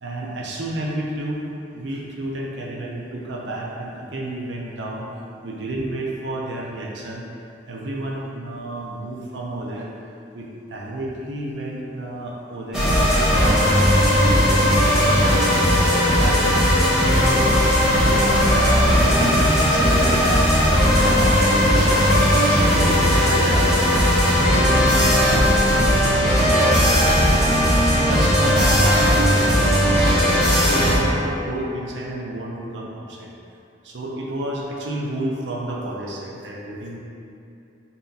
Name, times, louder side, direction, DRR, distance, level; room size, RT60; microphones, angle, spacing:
voice 1, 0.0-1.4 1.7-5.1 5.4-7.2 7.7-9.9 10.3-13.6 14.0-16.3 18.0-20.5 21.0-23.7 24.1-27.5 27.9-30.2 30.6-33.3 33.8-37.0, right 1 dB, 70° right, -2 dB, 0.6 m, -30 dB
sound 1, 12.7-31.0, equal, 5° right, 0.9 m, -17 dB
3.4 x 2.8 x 3.9 m, 2.6 s
head